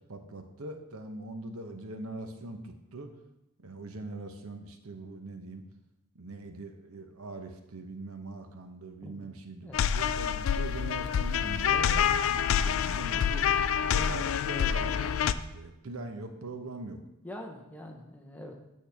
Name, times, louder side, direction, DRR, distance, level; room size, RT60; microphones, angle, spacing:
voice 1, 0.1-3.1 3.6-5.6 6.1-17.0, right 2 dB, 90° right, 6 dB, 0.9 m, -42 dB
sound 1, 9.7-15.3, left 8 dB, 65° left, 0.3 m, -27 dB
voice 2, 17.2-18.6, left 1 dB, 5° left, 1 dB, 0.8 m, -44 dB
8.5 x 6.3 x 3.4 m, 0.90 s
head